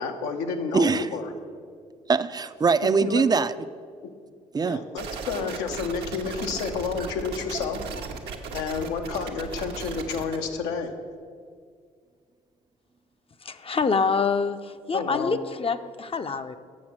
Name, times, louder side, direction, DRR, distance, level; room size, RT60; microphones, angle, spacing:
voice 1, 0.0-1.3 2.8-3.2 4.0-4.1 4.6-7.8 8.5-10.9 14.9-15.4, left 5 dB, 80° left, 5 dB, 0.8 m, -30 dB
voice 2, 0.7-1.1 2.1-3.5 4.5-4.8, right 5 dB, 25° right, 14 dB, 0.4 m, -22 dB
sound 1, 5.0-10.4, right 5 dB, 75° right, 0.9 m, -36 dB
voice 3, 13.4-16.6, left 5 dB, 35° left, 10 dB, 0.6 m, -26 dB
7.1 x 6.4 x 7.4 m, 2.1 s
hypercardioid pair, 45°, 17 cm